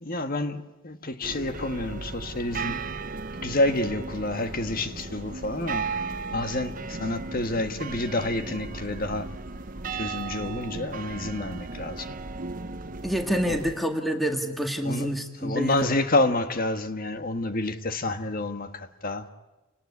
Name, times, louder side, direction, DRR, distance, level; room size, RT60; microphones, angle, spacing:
voice 1, 0.0-2.9 3.4-5.9 6.3-9.3 9.9-12.2 13.5-13.6 14.8-15.1 15.4-19.3, left 2 dB, 45° left, 1.5 m, -28 dB
sound 1, 1.2-13.8, right 4 dB, 40° right, 1.0 m, -36 dB
voice 2, 13.0-16.0, equal, ahead, 2.0 m, -27 dB
29.5 x 19.0 x 9.7 m
head